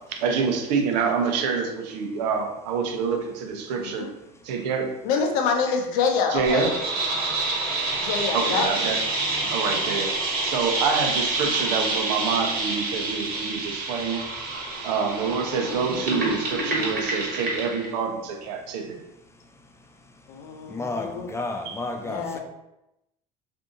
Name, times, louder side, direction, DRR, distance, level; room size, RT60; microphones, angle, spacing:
voice 1, 0.2-4.1 4.4-4.9 6.3-6.7 8.3-9.0 9.5-10.1 10.4-14.2 14.8-19.0 21.6-21.8, right 5 dB, 80° right, 3 dB, 0.7 m, -26 dB
voice 2, 5.0-6.7 8.0-8.7 15.8-16.0 20.3-21.3 22.0-22.4, left 5 dB, 70° left, 3 dB, 0.7 m, -26 dB
sound 1, 6.4-17.9, right 2 dB, 45° right, 1.1 m, -27 dB
voice 3, 20.7-22.4, left 2 dB, 15° left, 3 dB, 0.5 m, -31 dB
2.6 x 2.6 x 3.7 m, 0.90 s
hypercardioid pair, 80°, 21 cm